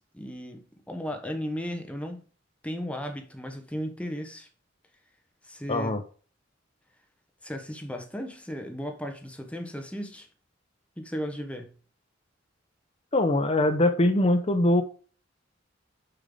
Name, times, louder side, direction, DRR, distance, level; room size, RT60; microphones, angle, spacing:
voice 1, 0.0-2.2 2.6-4.5 5.4-6.0 7.4-10.3 11.0-11.7, equal, 5° left, 1.0 m, -35 dB
voice 2, 5.7-6.0 13.1-14.8, left 1 dB, 30° left, 0.8 m, -22 dB
6.7 x 5.4 x 3.8 m
head